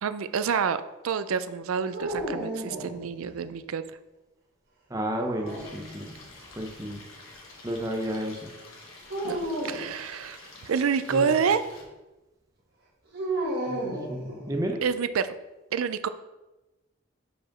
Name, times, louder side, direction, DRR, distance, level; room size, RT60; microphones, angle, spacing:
voice 1, 0.0-3.8 9.2-9.4 9.6-11.6 14.8-15.4 15.7-16.1, right 6 dB, 90° right, 13 dB, 0.4 m, -28 dB
sound 1, 1.9-3.5 5.1-6.2 9.1-9.9 13.1-14.8, right 1 dB, 50° right, 1.8 m, -33 dB
voice 2, 4.9-6.1 6.5-7.0 7.6-8.5 11.1-11.5 13.7-14.8, equal, 15° right, 2 dB, 0.6 m, -32 dB
Stream, 5.5-11.8, left 2 dB, 80° left, 1.5 m, -48 dB
5.1 x 4.9 x 5.8 m, 1.0 s
head